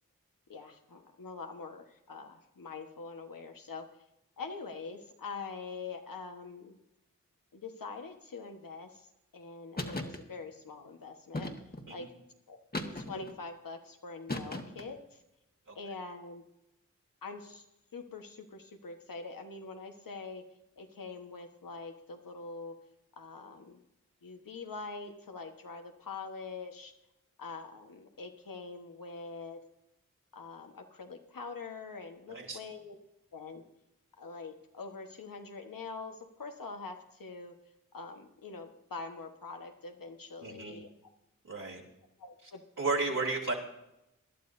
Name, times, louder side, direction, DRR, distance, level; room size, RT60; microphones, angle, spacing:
voice 1, 0.5-3.9 4.4-6.8 7.5-9.1 9.3-11.5 11.9-12.1 12.5-12.6 12.8-15.2 15.7-16.4 17.2-17.6 17.9-20.4 20.8-22.8 23.2-23.8 24.2-26.9 27.4-29.6 30.3-33.0 33.3-33.6 34.2-37.5 37.9-40.9 42.2-42.6, left 4 dB, 80° left, 4 dB, 1.4 m, -44 dB
sound 1, 9.8-10.2 11.3-11.9 12.7-13.4 14.3-14.9, left 1 dB, 30° left, 1.5 m, -37 dB
voice 2, 40.4-40.8 41.4-41.8 42.4-42.5 42.8-43.5, right 3 dB, 65° right, -3 dB, 3.3 m, -33 dB
20.5 x 11.5 x 2.7 m, 0.90 s
cardioid pair, 45°, 33 cm